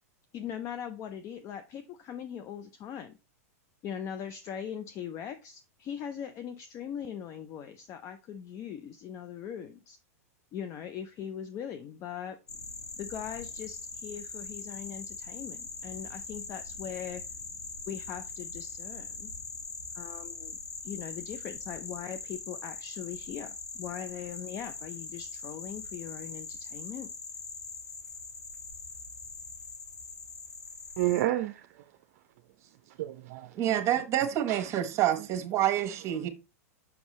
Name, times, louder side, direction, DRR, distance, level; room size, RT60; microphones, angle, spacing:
voice 1, 0.3-3.2 3.8-10.0 10.5-12.4 13.0-17.2 17.9-19.3 19.9-27.1, left 8 dB, 35° left, 0.6 m, -40 dB
sound 1, 12.5-31.2, left 4 dB, 90° left, 1.3 m, -42 dB
voice 2, 31.0-31.7 32.6-33.9 34.5-34.6, right 15 dB, 60° right, 0.5 m, -31 dB
voice 3, 33.6-36.3, right 11 dB, 35° right, 1.3 m, -27 dB
6.0 x 5.4 x 3.1 m
hypercardioid pair, 105°, 9 cm